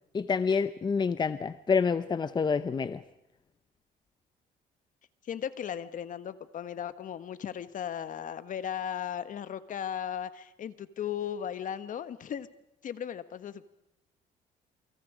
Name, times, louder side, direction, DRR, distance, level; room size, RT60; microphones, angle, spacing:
voice 1, 0.1-3.0, left 5 dB, 25° left, 13 dB, 0.7 m, -27 dB
voice 2, 5.2-12.5 12.8-13.7, left 9 dB, 50° left, 13 dB, 1.4 m, -36 dB
28.5 x 25.0 x 5.0 m, 0.85 s
cardioid pair, 110°, 17 cm